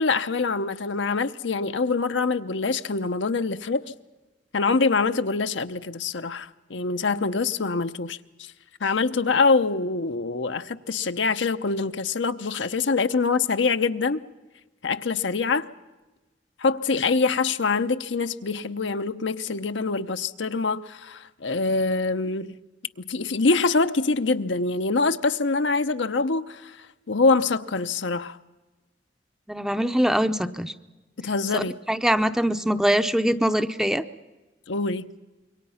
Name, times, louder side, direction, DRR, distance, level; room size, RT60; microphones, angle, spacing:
voice 1, 0.0-3.9 4.5-8.2 8.8-14.2 14.8-15.7 16.6-22.6 23.0-28.4 31.2-31.8 34.7-35.1, left 4 dB, 75° left, 0.8 m, -24 dB
voice 2, 29.5-30.7 31.5-34.0, equal, 5° right, 0.6 m, -23 dB
26.5 x 23.0 x 5.7 m
head